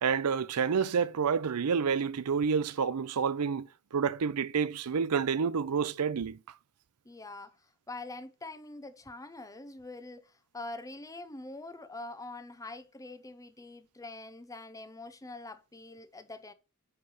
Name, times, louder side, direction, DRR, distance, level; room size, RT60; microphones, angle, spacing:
voice 1, 0.0-6.4, right 6 dB, 85° right, 0.5 m, -29 dB
voice 2, 7.0-16.5, left 2 dB, 15° left, 0.8 m, -44 dB
9.7 x 3.4 x 5.5 m
head